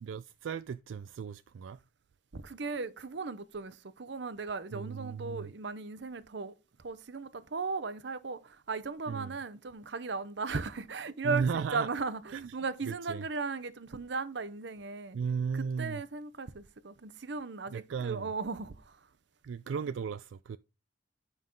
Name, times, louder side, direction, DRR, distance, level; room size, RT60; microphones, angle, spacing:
voice 1, 0.0-1.8 4.7-5.5 9.1-9.3 11.2-11.9 12.3-12.5 12.9-13.2 15.1-16.0 17.7-18.3 19.4-20.6, right 6 dB, 85° right, 0.3 m, -35 dB
voice 2, 2.3-6.5 6.8-15.2 15.5-19.0, right 4 dB, 65° right, 0.7 m, -37 dB
9.6 x 5.4 x 3.8 m
head